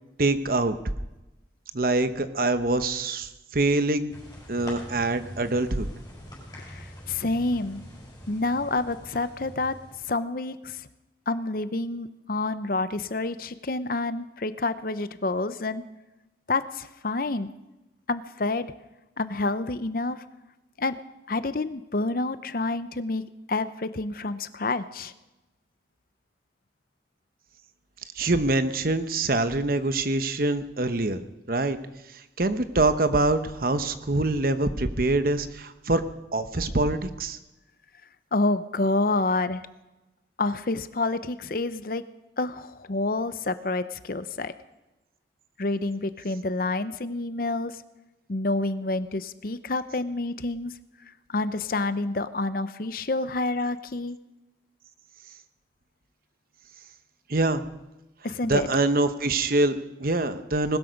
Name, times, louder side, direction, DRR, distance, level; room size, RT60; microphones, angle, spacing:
voice 1, 0.2-0.8 1.7-4.1 4.5-5.9 28.2-31.2 31.5-31.8 32.4-36.0 36.3-37.4 57.3-57.6 58.4-60.8, right 2 dB, 50° right, 10 dB, 1.0 m, -24 dB
sound 1, 4.1-10.1, equal, 20° left, 6.3 m, -44 dB
voice 2, 6.6-7.8 8.3-9.8 10.1-10.9 11.3-15.8 16.5-17.5 18.1-18.7 19.2-20.2 20.8-21.0 21.3-23.2 23.5-25.1 38.3-39.7 40.4-42.0 42.4-44.5 45.6-47.8 48.3-50.7 51.3-54.2 58.2-58.7, left 2 dB, 50° left, 13 dB, 0.7 m, -28 dB
20.0 x 13.0 x 5.3 m, 1.0 s
head